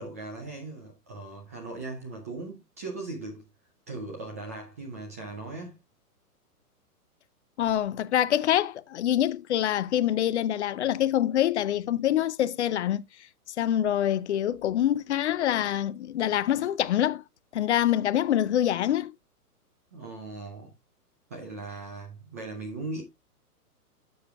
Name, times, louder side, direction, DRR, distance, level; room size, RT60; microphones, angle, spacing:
voice 1, 0.0-3.4 3.9-5.8 19.9-20.7 21.3-23.0, right 3 dB, 10° right, 0.4 m, -38 dB
voice 2, 7.6-13.0 13.6-17.2 17.5-19.1, left 11 dB, 50° left, 0.5 m, -25 dB
11.0 x 7.0 x 2.2 m
hypercardioid pair, 125°, 46 cm